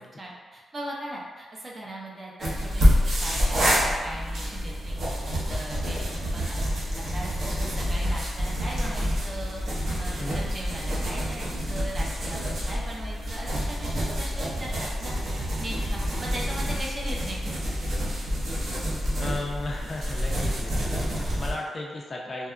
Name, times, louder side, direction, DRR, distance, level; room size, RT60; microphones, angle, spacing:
voice 1, 0.2-6.6 7.1-15.1 15.6-17.6, right 1 dB, 30° right, -3 dB, 0.5 m, -39 dB
sound 1, 2.4-21.5, equal, 65° right, 0.7 m, -27 dB
voice 2, 10.2-10.6 19.2-22.5, left 2 dB, 35° left, -1 dB, 0.3 m, -35 dB
2.7 x 2.2 x 2.3 m, 1.4 s
cardioid pair, 115°, 0 cm